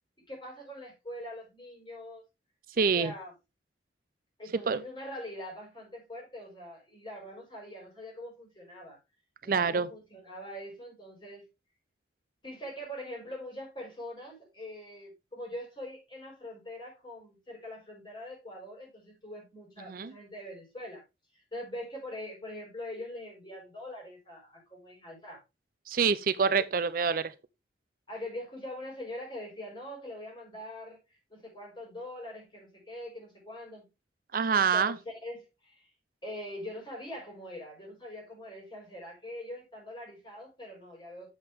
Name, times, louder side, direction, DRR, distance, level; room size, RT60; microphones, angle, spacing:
voice 1, 0.3-2.2 2.8-3.3 4.4-9.0 9.4-11.5 12.4-21.0 21.3-25.4 26.4-26.6 28.1-33.9 34.5-35.9 36.2-41.3, left 1 dB, 25° left, 5.7 m, -43 dB
voice 2, 2.8-3.1 4.7-4.8 9.5-9.9 19.9-20.1 25.9-27.3 34.3-35.0, right 5 dB, 55° right, 0.5 m, -26 dB
8.0 x 7.7 x 3.5 m
head